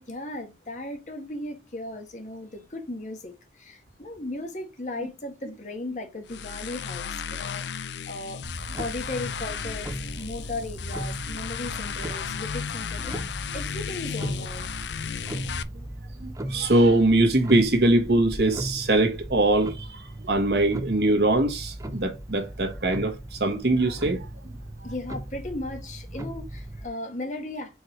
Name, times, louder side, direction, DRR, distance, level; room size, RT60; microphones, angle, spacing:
voice 1, 0.1-8.5 8.8-14.7 24.8-27.8, left 2 dB, 40° left, 1.4 m, -36 dB
sound 1, 6.3-15.6, left 7 dB, 75° left, 0.5 m, -34 dB
Clock, 8.4-26.9, right 1 dB, 20° right, 0.7 m, -37 dB
voice 2, 16.2-24.3, right 2 dB, 65° right, 1.5 m, -22 dB
4.7 x 4.4 x 4.5 m
head